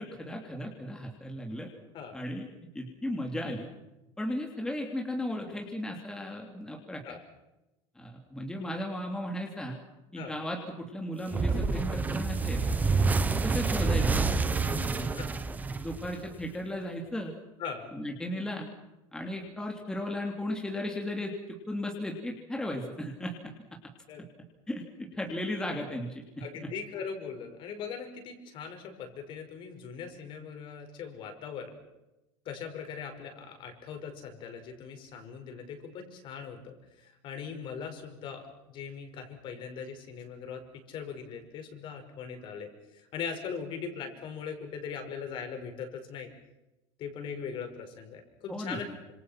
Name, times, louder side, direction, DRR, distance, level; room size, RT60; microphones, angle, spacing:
voice 1, 0.0-1.7 2.1-2.5 2.7-3.7 4.2-7.2 7.9-9.8 10.1-12.6 13.2-15.1 15.7-17.3 17.9-18.7 19.1-23.5 24.7-26.2 26.6-26.7 48.5-48.8, left 1 dB, 5° left, 1 dB, 2.9 m, -36 dB
sound 1, 11.3-16.5, right 4 dB, 15° right, 1.3 m, -28 dB
voice 2, 17.6-17.9 22.7-22.8 24.1-24.2 26.4-31.8 32.5-46.3 47.0-48.9, left 6 dB, 40° left, 6 dB, 5.5 m, -40 dB
28.5 x 27.0 x 5.9 m, 0.98 s
cardioid pair, 160°, 13 cm